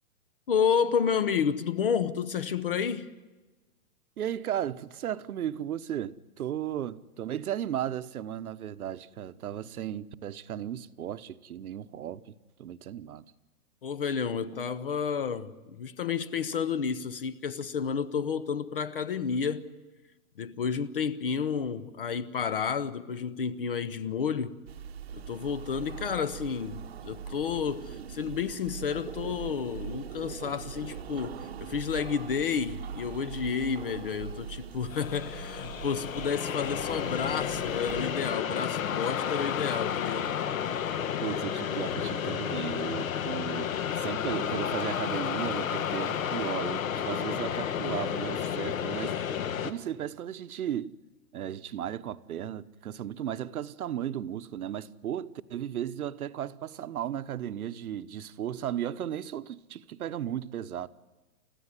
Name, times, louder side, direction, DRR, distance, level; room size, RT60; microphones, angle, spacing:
voice 1, 0.5-3.1 13.8-19.7 20.4-24.6 25.2-40.3, left 6 dB, 40° left, 0.8 m, -31 dB
voice 2, 4.2-12.3 12.6-13.3 41.2-43.7 44.0-49.3 49.6-50.9 51.3-60.9, right 10 dB, 70° right, 1.1 m, -35 dB
sound 1, 24.7-38.1, right 7 dB, 40° right, 1.0 m, -42 dB
sound 2, 34.9-49.7, left 8 dB, 60° left, 1.7 m, -31 dB
30.0 x 15.0 x 9.7 m
hypercardioid pair, 180°, 45 cm